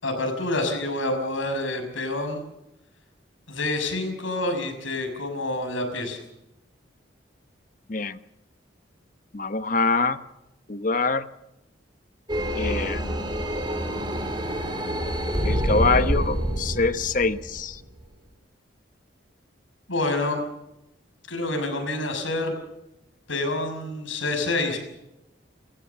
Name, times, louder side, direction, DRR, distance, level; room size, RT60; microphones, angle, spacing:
voice 1, 0.0-2.4 3.5-6.2 19.9-20.4 21.3-22.5 23.3-24.8, left 2 dB, 90° left, 5 dB, 6.3 m, -27 dB
voice 2, 9.3-10.2 10.7-11.2 12.5-13.0 15.4-17.8, left 3 dB, 45° left, 12 dB, 1.0 m, -24 dB
sound 1, 12.3-18.0, equal, 25° right, 4.6 m, -27 dB
29.5 x 15.5 x 7.0 m, 0.89 s
head